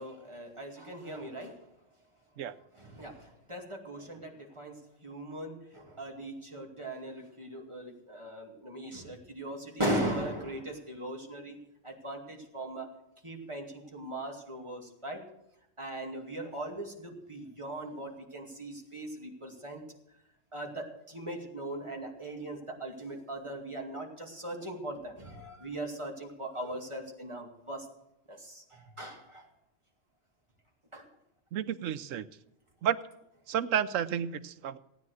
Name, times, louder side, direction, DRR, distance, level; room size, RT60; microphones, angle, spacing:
voice 1, 0.0-1.6 2.8-11.6 11.8-12.9 13.2-15.2 15.8-19.8 20.5-27.9 28.3-29.5 30.9-31.0, right 1 dB, 25° right, 1 dB, 2.4 m, -39 dB
voice 2, 31.5-32.3 32.8-33.0 33.5-34.8, right 9 dB, 85° right, 14 dB, 1.1 m, -31 dB
17.0 x 9.5 x 6.3 m, 0.84 s
omnidirectional pair, 1.3 m